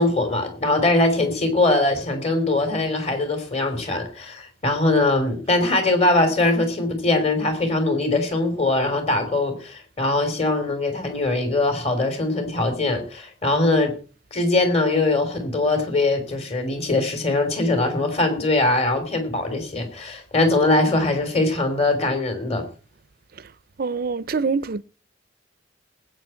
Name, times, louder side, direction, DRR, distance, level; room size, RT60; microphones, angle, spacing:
voice 1, 0.0-13.9 14.3-22.7, left 2 dB, 35° left, 3.5 m, -21 dB
voice 2, 23.8-24.8, right 4 dB, 50° right, 0.5 m, -24 dB
20.0 x 9.0 x 4.5 m
head